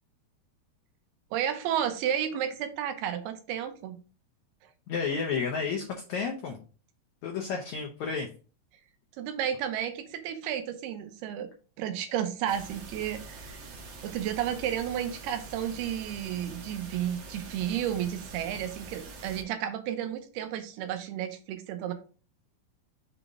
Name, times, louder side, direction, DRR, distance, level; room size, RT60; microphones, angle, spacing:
voice 1, 1.3-4.0 9.2-11.5 11.8-13.5 14.0-21.9, right 10 dB, 90° right, 8 dB, 2.8 m, -32 dB
voice 2, 4.9-6.6 7.2-8.3, left 5 dB, 85° left, 2 dB, 1.6 m, -31 dB
sound 1, 12.5-19.4, right 3 dB, 70° right, 1.5 m, -45 dB
7.0 x 4.0 x 3.6 m, 0.36 s
omnidirectional pair, 4.5 m